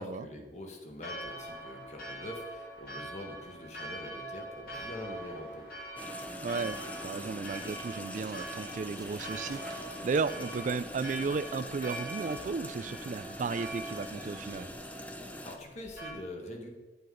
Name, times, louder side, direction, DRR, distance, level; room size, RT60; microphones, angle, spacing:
voice 1, 0.0-5.7 15.4-16.7, left 1 dB, 40° left, 2 dB, 1.6 m, -44 dB
Church bell, 1.0-16.1, right 1 dB, 55° left, 3.1 m, -43 dB
sound 1, 6.0-15.6, left 1 dB, 10° left, 0.7 m, -43 dB
voice 2, 6.4-14.7, right 4 dB, 45° right, 15 dB, 0.3 m, -34 dB
sound 2, 7.5-14.7, right 3 dB, 20° right, 1.1 m, -58 dB
9.5 x 9.2 x 3.9 m, 1.3 s
head